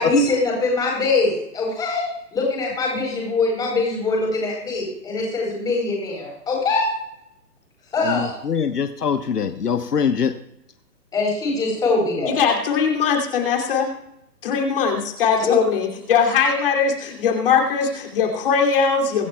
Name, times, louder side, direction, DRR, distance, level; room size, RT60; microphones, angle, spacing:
voice 1, 0.0-6.9 7.9-8.4 11.1-12.4 15.4-15.7, left 3 dB, 10° left, -2 dB, 4.1 m, -22 dB
voice 2, 8.0-10.4, left 6 dB, 70° left, 8 dB, 1.3 m, -23 dB
voice 3, 12.3-13.9 14.4-19.3, left 6 dB, 35° left, 1 dB, 2.8 m, -20 dB
24.0 x 11.5 x 2.3 m, 0.79 s
hypercardioid pair, 155°, 49 cm